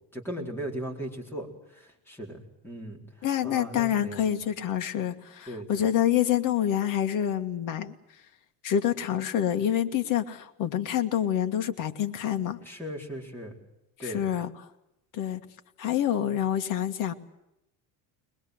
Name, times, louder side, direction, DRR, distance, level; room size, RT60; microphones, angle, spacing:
voice 1, 0.1-1.5 1.7-2.4 2.6-3.0 3.4-4.4 5.5-5.9 12.6-13.6 14.0-14.3, equal, 5° left, -1 dB, 4.2 m, -37 dB
voice 2, 3.2-7.9 8.6-12.6 14.0-14.5 15.1-15.4 15.8-17.1, left 10 dB, 50° left, 7 dB, 1.8 m, -27 dB
22.5 x 21.0 x 7.9 m, 0.88 s
cardioid pair, 155°, 41 cm